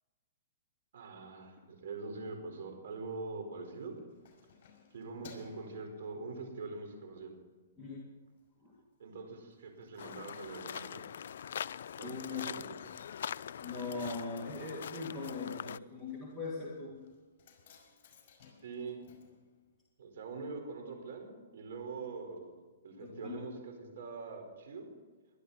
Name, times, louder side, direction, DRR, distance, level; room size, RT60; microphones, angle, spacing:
voice 1, 0.9-3.9 4.9-7.3 9.0-11.1 12.0-12.6 12.9-13.0 18.6-19.0 20.0-22.5 22.8-24.9, right 4 dB, 65° right, 4 dB, 4.7 m, -43 dB
Keys jangling, 3.6-6.7 7.2-7.4 7.8-8.5 8.7-8.8 9.1-9.2 9.4-20.2 20.4-20.5, left 6 dB, 40° left, 5.6 m, -61 dB
voice 2, 7.8-8.1 8.6-8.7 12.0-12.5 13.6-17.1 23.0-23.4, left 4 dB, 5° right, -4 dB, 2.4 m, -40 dB
sound 1, 10.0-15.8, left 8 dB, 65° left, 0.4 m, -43 dB
22.5 x 12.0 x 4.3 m, 1.3 s
hypercardioid pair, 150°, 0 cm